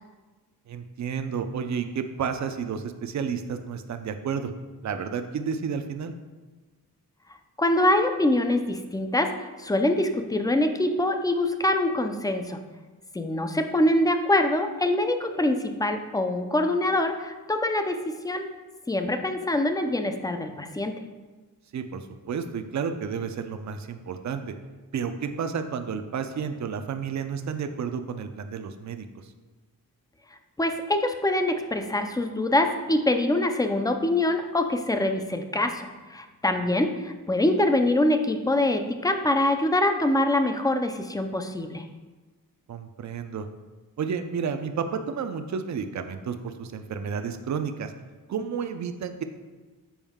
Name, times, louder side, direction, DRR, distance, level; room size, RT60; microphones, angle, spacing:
voice 1, 0.7-4.5 4.8-6.1 21.7-24.5 24.9-29.3 42.7-43.5 44.0-47.9 48.3-49.2, right 6 dB, 55° right, 8 dB, 0.5 m, -31 dB
voice 2, 7.6-12.6 13.1-18.5 18.9-21.0 30.6-41.8, left 1 dB, 10° left, 6 dB, 0.4 m, -24 dB
7.1 x 5.3 x 3.6 m, 1.3 s
wide cardioid pair, 160°, 35 cm